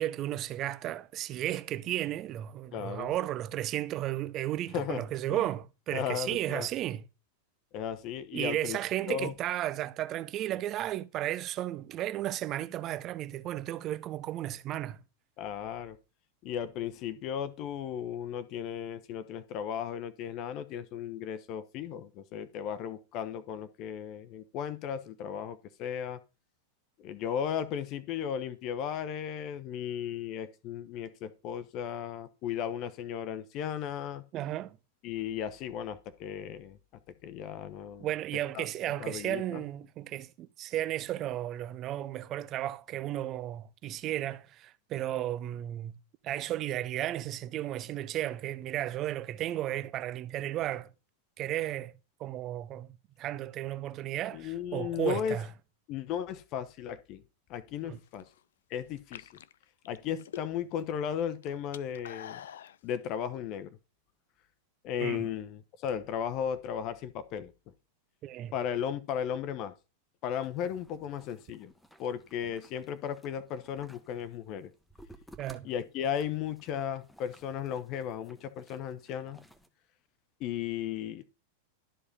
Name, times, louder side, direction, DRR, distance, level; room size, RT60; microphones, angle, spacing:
voice 1, 0.0-7.1 8.3-15.0 34.3-34.8 38.0-46.0 46.2-50.9 51.4-51.9 52.2-55.5 57.8-58.0 65.0-65.3 68.2-68.5 75.4-75.7, right 13 dB, 35° right, 0.7 m, -34 dB
voice 2, 2.7-3.1 4.7-5.4 5.9-6.7 7.7-8.8 9.1-9.3 15.4-16.0 16.4-26.2 27.0-34.2 35.0-36.8 37.2-38.1 38.5-38.7 39.0-39.6 54.3-55.4 55.9-57.2 57.5-58.2 58.7-59.3 59.9-62.4 62.8-63.7 64.8-67.5 68.5-69.7 70.2-71.7 72.0-74.7 75.6-79.4 80.4-81.2, left 9 dB, 40° left, 0.9 m, -35 dB
sound 1, 57.9-58.4 59.0-60.8 61.1-62.8, left 10 dB, 60° left, 0.5 m, -46 dB
sound 2, 70.4-79.7, equal, 5° left, 1.3 m, -58 dB
12.5 x 5.0 x 5.5 m
figure-of-eight pair, 90°, 0 cm